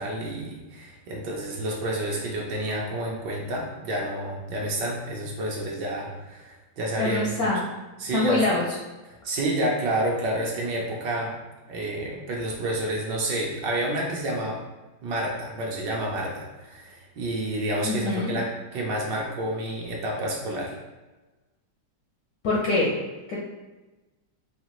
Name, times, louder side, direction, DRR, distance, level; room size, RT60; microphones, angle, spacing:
voice 1, 0.0-7.2 8.0-8.4 9.0-11.3 11.7-14.6 15.0-20.8, right 1 dB, 70° right, -2 dB, 1.2 m, -29 dB
voice 2, 7.0-7.6 8.1-8.6 17.8-18.3 22.4-22.9 23.3-23.4, left 2 dB, 70° left, -4 dB, 0.8 m, -24 dB
4.9 x 2.4 x 2.9 m, 1.2 s
omnidirectional pair, 2.2 m